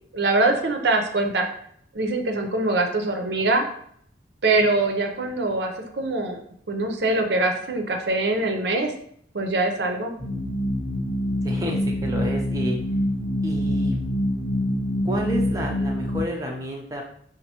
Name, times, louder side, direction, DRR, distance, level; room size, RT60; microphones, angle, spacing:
voice 1, 0.1-1.5 1.9-3.6 4.4-6.4 6.7-8.9 9.3-10.1, right 2 dB, 65° right, 4 dB, 0.6 m, -23 dB
sound 1, 10.2-16.2, equal, 15° left, 0.7 m, -25 dB
voice 2, 11.4-12.8 13.4-14.0 15.0-17.0, equal, 20° right, 0 dB, 0.4 m, -30 dB
5.3 x 2.5 x 2.9 m, 0.66 s
head